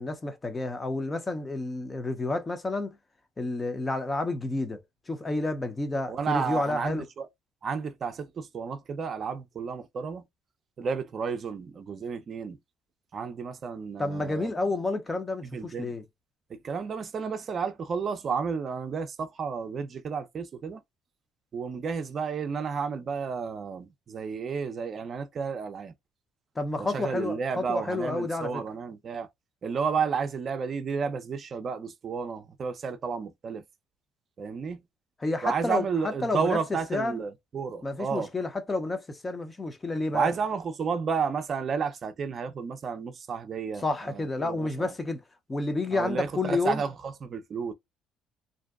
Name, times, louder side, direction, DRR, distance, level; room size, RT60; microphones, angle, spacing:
voice 1, 0.0-3.0 3.4-4.8 5.1-7.0 14.0-16.0 26.6-28.6 35.2-36.6 36.9-37.2 37.8-40.3 43.8-45.2 45.5-46.8, left 2 dB, 20° left, 0.6 m, -30 dB
voice 2, 6.1-7.3 7.6-10.2 10.8-12.6 13.1-14.5 15.4-15.9 16.6-20.8 21.5-25.9 26.8-29.3 29.6-33.6 34.4-34.8 35.4-38.3 40.1-44.9 45.9-47.7, right 5 dB, 45° right, 0.5 m, -32 dB
2.6 x 2.1 x 2.3 m
supercardioid pair, 80°, 0 cm